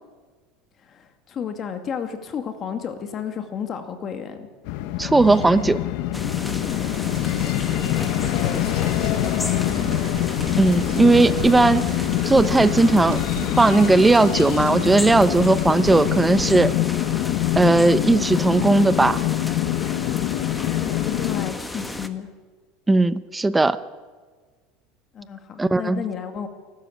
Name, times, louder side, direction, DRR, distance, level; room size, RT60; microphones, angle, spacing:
voice 1, 0.8-4.5 8.4-9.7 20.8-22.3 25.1-26.5, left 7 dB, 35° left, 7 dB, 2.2 m, -32 dB
sound 1, 4.7-21.5, left 15 dB, 65° left, 1.0 m, -25 dB
voice 2, 5.0-5.8 8.0-8.1 10.6-11.9 12.2-13.2 13.6-16.7 17.6-19.2 22.9-23.8 25.6-26.0, right 2 dB, 10° right, 14 dB, 0.8 m, -17 dB
sound 2, 6.1-22.1, left 1 dB, 5° left, 1.3 m, -33 dB
sound 3, 6.4-16.5, right 6 dB, 80° right, 5.0 m, -38 dB
28.0 x 12.5 x 8.6 m, 1.5 s
supercardioid pair, 135°, 0 cm